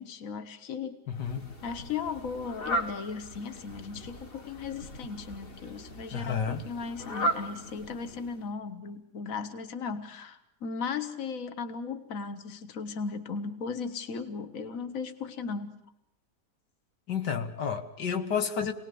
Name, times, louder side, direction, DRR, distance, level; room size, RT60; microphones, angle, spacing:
voice 1, 0.0-1.0 1.6-15.9, left 5 dB, 55° left, 9 dB, 1.8 m, -37 dB
voice 2, 1.1-1.5 6.1-6.6 17.1-18.7, left 7 dB, 90° left, 6 dB, 2.2 m, -31 dB
Fowl, 1.1-8.5, equal, 35° left, 1.8 m, -37 dB
27.0 x 19.5 x 7.0 m, 0.79 s
omnidirectional pair, 1.8 m